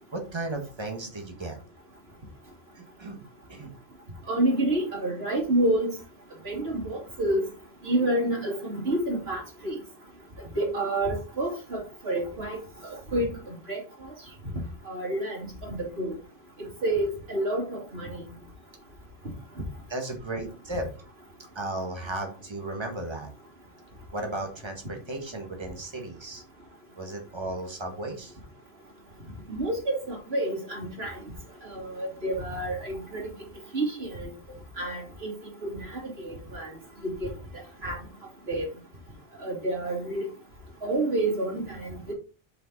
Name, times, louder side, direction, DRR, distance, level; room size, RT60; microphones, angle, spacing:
voice 1, 0.1-1.6 2.7-3.2 3.5-3.7 19.9-20.9 21.5-23.3 24.1-26.4 27.0-28.3 34.5-34.6, right 2 dB, 25° right, 3 dB, 1.6 m, -35 dB
voice 2, 4.3-5.9 6.4-7.4 7.8-9.8 10.6-12.6 12.8-13.3 13.7-13.8 14.9-16.2 16.8-18.2 29.5-31.1 31.7-33.2 33.7-34.3 34.8-35.3 35.6-36.7 37.0-37.3 37.8-38.0 38.5-38.7 39.4-40.3 40.8-42.1, right 1 dB, 80° right, -3 dB, 2.8 m, -28 dB
7.6 x 4.9 x 4.0 m, 0.36 s
omnidirectional pair, 1.0 m